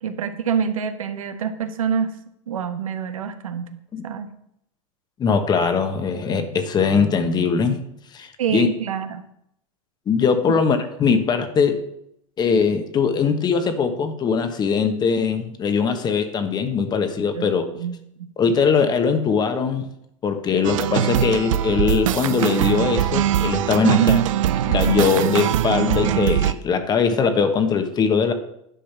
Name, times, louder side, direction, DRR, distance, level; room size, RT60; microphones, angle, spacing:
voice 1, 0.0-2.2 2.5-3.8 4.0-4.3 8.4-9.2 15.9-16.0 17.3-17.5 17.7-18.3 20.5-20.7 23.8-24.3, right 7 dB, 90° right, 8 dB, 1.2 m, -25 dB
voice 2, 5.2-7.8 8.1-8.7 10.1-11.8 12.4-17.6 18.4-19.9 20.2-24.2 24.6-28.3, left 6 dB, 25° left, 8 dB, 1.1 m, -21 dB
sound 1, 20.6-26.5, right 11 dB, 70° right, 0.6 m, -22 dB
10.5 x 5.0 x 5.9 m, 0.76 s
hypercardioid pair, 125°, 17 cm